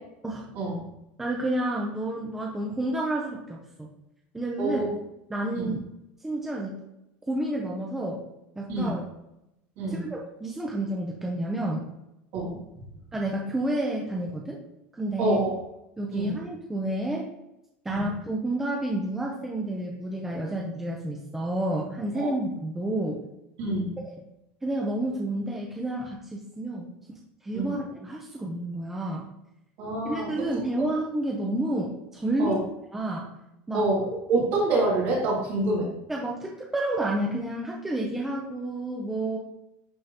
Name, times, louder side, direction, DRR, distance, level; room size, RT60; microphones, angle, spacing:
voice 1, 1.2-3.9 4.3-4.8 5.3-5.8 6.2-6.8 7.3-8.2 8.6-9.0 9.9-11.9 13.1-14.6 14.9-15.4 16.0-17.3 17.8-23.2 24.6-26.9 27.4-29.2 30.0-32.6 32.9-33.3 33.7-33.8 36.1-39.4, right 1 dB, 5° right, -2 dB, 0.6 m, -30 dB
voice 2, 4.6-4.9 5.5-5.8 8.7-9.0 9.8-10.1 12.3-12.6 15.2-15.6 16.1-16.3 17.9-18.1 22.2-22.3 23.6-24.0 27.5-27.7 29.8-30.3 30.8-30.9 32.4-32.6 33.7-35.9, right 2 dB, 50° right, -4 dB, 2.5 m, -27 dB
10.5 x 3.6 x 2.9 m, 0.87 s
cardioid pair, 170°, 5 cm